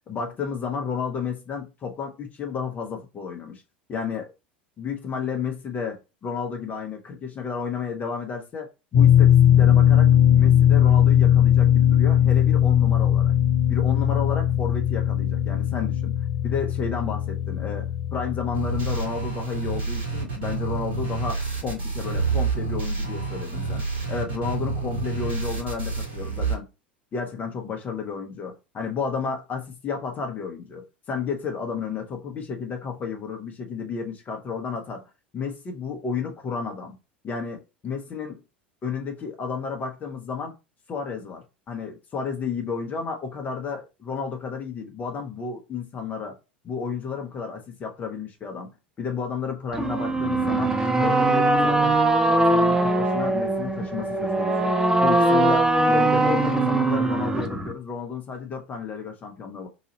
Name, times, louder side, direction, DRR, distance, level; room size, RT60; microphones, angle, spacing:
voice 1, 0.1-3.6 3.9-4.3 4.8-13.3 13.7-16.1 16.4-23.8 24.1-26.7 27.1-35.0 35.3-37.0 37.2-38.4 38.8-40.5 40.9-46.3 46.6-48.7 49.0-50.7 51.0-54.7 55.0-59.7, left 5 dB, 30° left, 1.1 m, -32 dB
sound 1, 8.9-19.0, left 10 dB, 60° left, 0.7 m, -19 dB
sound 2, 18.5-26.5, right 4 dB, 65° right, 2.4 m, -28 dB
sound 3, 49.7-57.7, right 2 dB, 10° right, 0.8 m, -21 dB
4.0 x 2.7 x 4.2 m
figure-of-eight pair, 80°, 6 cm